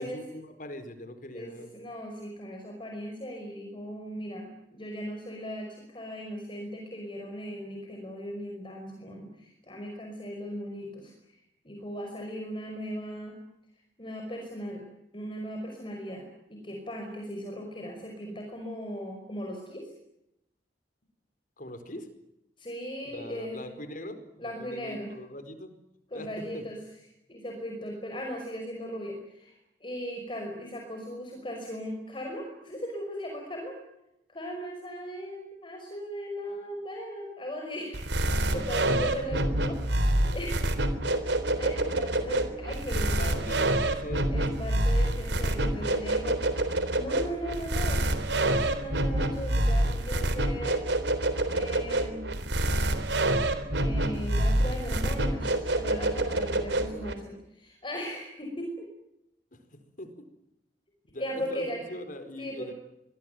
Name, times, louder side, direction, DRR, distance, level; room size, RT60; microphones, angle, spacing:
voice 1, 0.0-1.7 21.6-22.1 23.0-25.7 26.1-26.6 38.5-38.6 39.1-39.2 42.9-44.3 59.5-60.2 61.1-62.7, left 1 dB, 50° left, 10 dB, 4.6 m, -41 dB
voice 2, 1.3-11.1 11.6-13.4 14.0-14.8 15.1-19.9 22.6-23.7 24.4-25.1 26.1-26.8 27.3-33.8 34.3-38.1 38.5-40.0 40.3-40.7 40.9-43.5 44.3-46.4 46.7-50.9 51.5-52.3 53.8-58.9 61.2-61.8 62.4-62.7, equal, 30° left, 2 dB, 5.4 m, -38 dB
sound 1, 37.9-57.1, right 1 dB, 80° right, 3.6 m, -27 dB
26.0 x 20.5 x 9.2 m, 0.84 s
head